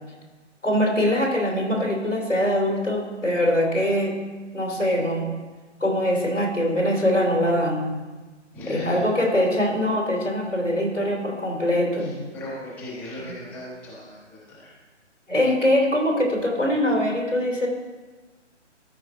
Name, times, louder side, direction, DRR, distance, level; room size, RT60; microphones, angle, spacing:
voice 1, 0.6-4.2 4.5-5.3 5.8-7.9 8.7-12.2 15.3-17.7, left 1 dB, 85° left, 0 dB, 2.8 m, -23 dB
voice 2, 8.5-9.0 12.0-14.7, left 1 dB, 5° left, -7 dB, 0.8 m, -38 dB
13.5 x 4.8 x 4.5 m, 1.3 s
figure-of-eight pair, 140°, 37 cm